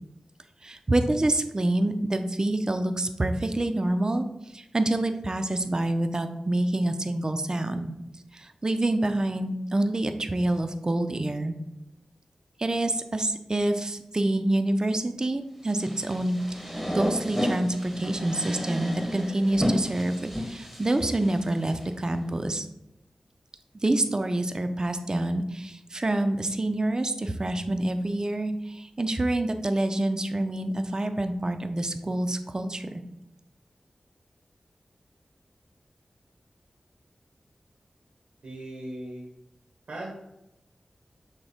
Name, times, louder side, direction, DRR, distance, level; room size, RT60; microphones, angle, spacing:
voice 1, 0.6-4.2 4.5-7.9 8.3-11.5 12.6-16.4 16.9-22.7 23.8-32.9, right 1 dB, 35° right, 8 dB, 0.4 m, -27 dB
sound 1, 15.7-21.8, equal, ahead, 0.9 m, -32 dB
voice 2, 38.4-39.3 39.9-40.1, right 1 dB, 85° right, -2 dB, 0.8 m, -38 dB
6.1 x 2.1 x 3.4 m, 0.87 s
wide cardioid pair, 60°, 2 cm